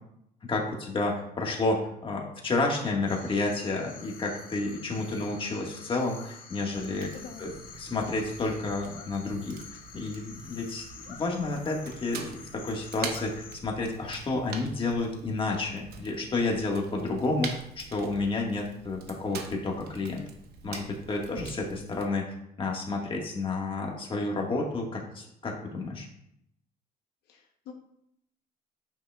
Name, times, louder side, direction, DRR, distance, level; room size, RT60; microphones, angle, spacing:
voice 1, 0.5-7.1 7.4-7.5 7.8-9.6 9.9-20.2 20.6-26.1, left 3 dB, 30° left, -1 dB, 1.6 m, -30 dB
sound 1, 3.1-13.6, left 6 dB, 55° left, 1.2 m, -48 dB
Fire, 6.7-22.1, right 5 dB, 70° right, 0.9 m, -45 dB
voice 2, 6.9-7.5 27.3-27.7, left 7 dB, 80° left, 2 dB, 1.0 m, -45 dB
9.3 x 5.9 x 2.3 m, 0.75 s
cardioid pair, 110°, 17 cm